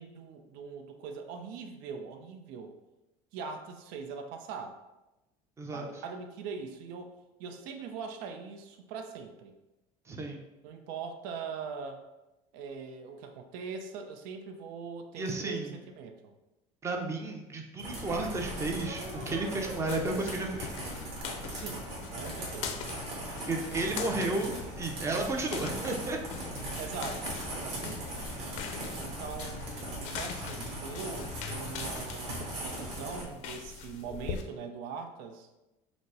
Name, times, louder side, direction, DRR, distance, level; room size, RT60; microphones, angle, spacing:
voice 1, 0.0-2.7 3.3-4.8 5.7-7.1 7.4-9.5 10.6-12.0 12.5-16.3 21.5-21.9 22.1-22.8 26.8-28.0 29.0-35.5, right 5 dB, 80° right, 5 dB, 0.6 m, -42 dB
voice 2, 5.6-6.0 10.1-10.4 15.2-15.8 16.8-20.7 23.5-26.2, right 2 dB, 20° right, 2 dB, 0.6 m, -33 dB
sound 1, 17.8-33.2, right 1 dB, 50° right, 1.5 m, -39 dB
sound 2, 17.9-34.4, left 6 dB, 60° left, 0.5 m, -43 dB
5.1 x 2.1 x 4.7 m, 0.99 s
cardioid pair, 155°, 14 cm